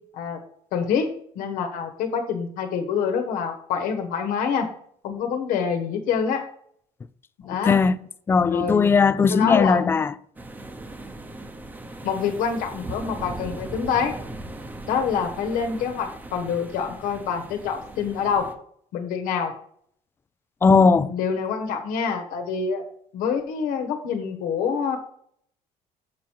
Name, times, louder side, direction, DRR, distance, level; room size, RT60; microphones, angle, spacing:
voice 1, 0.7-4.7 5.0-6.4 7.4-7.8 8.4-8.9 9.3-9.8 12.0-14.1 14.9-18.5 18.9-19.5 21.1-22.8 23.1-25.0, left 6 dB, 85° left, 1.4 m, -26 dB
voice 2, 7.5-8.0 8.3-10.1 20.6-21.1, left 5 dB, 15° left, 0.3 m, -18 dB
sound 1, 10.4-18.5, right 2 dB, 15° right, 0.9 m, -39 dB
7.3 x 7.3 x 4.7 m
cardioid pair, 165°, 14 cm